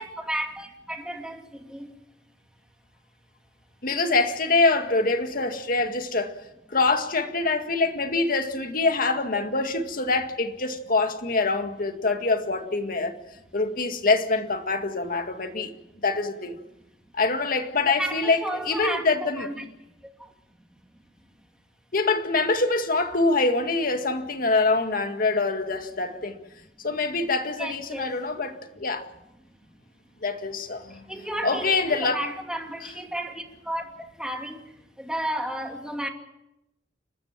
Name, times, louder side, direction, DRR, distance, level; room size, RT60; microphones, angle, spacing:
voice 1, 0.0-1.4 1.7-1.9 17.8-19.6 27.6-28.2 31.1-34.7 35.0-36.1, right 1 dB, 5° right, 2.5 m, -32 dB
voice 2, 3.8-6.3 6.7-13.1 13.5-15.7 16.0-16.6 17.1-19.7 21.9-26.4 26.8-29.1 30.2-31.0 31.4-32.2, left 3 dB, 55° left, 2.0 m, -25 dB
30.0 x 13.5 x 7.5 m
head